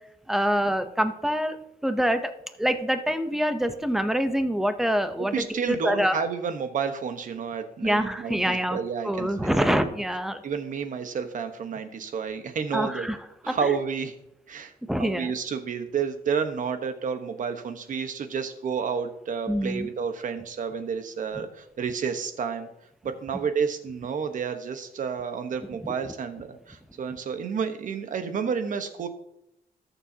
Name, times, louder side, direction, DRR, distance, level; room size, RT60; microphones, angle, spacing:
voice 1, 0.3-1.6 1.8-2.3 2.6-6.2 7.8-8.8 9.0-10.4 12.7-13.2 13.5-13.8 14.9-15.3 19.5-19.9 25.8-25.9, equal, ahead, 9 dB, 0.7 m, -25 dB
voice 2, 5.2-9.7 10.4-13.1 13.4-14.1 14.5-14.7 15.0-22.7 23.0-29.1, right 6 dB, 55° right, 8 dB, 1.2 m, -30 dB
19.5 x 7.1 x 2.8 m, 0.82 s
cardioid pair, 140°, 16 cm